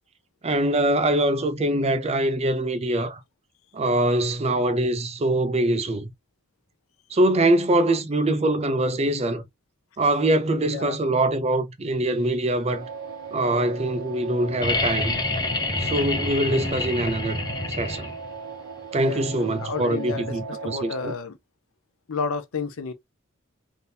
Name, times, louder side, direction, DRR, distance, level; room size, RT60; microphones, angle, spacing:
voice 1, 0.4-3.2 3.7-6.1 7.1-9.4 10.0-12.9 13.3-15.2 15.8-17.4 17.7-18.1 18.9-21.1, right 1 dB, 30° right, 0.4 m, -23 dB
voice 2, 10.5-11.0 18.9-21.4 22.1-22.9, left 5 dB, 80° left, 0.6 m, -32 dB
sound 1, 12.7-21.1, right 5 dB, 80° right, 0.5 m, -38 dB
sound 2, 14.6-18.4 20.1-20.2, left 3 dB, 20° left, 0.6 m, -27 dB
3.4 x 2.7 x 2.7 m
head